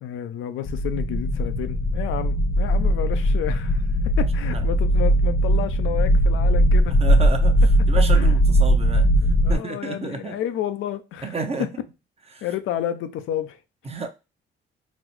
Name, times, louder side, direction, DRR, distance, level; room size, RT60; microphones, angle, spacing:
voice 1, 0.0-3.8 4.2-7.0 8.1-8.3 9.2-11.7 12.4-13.6, left 11 dB, 85° left, 0.5 m, -30 dB
sound 1, 0.7-9.6, equal, 20° left, 0.4 m, -19 dB
voice 2, 7.0-9.1 9.5-10.4 11.2-11.7 12.3-12.5 13.8-14.1, right 4 dB, 30° right, 0.7 m, -30 dB
4.0 x 2.0 x 3.0 m
cardioid pair, 90°, 20 cm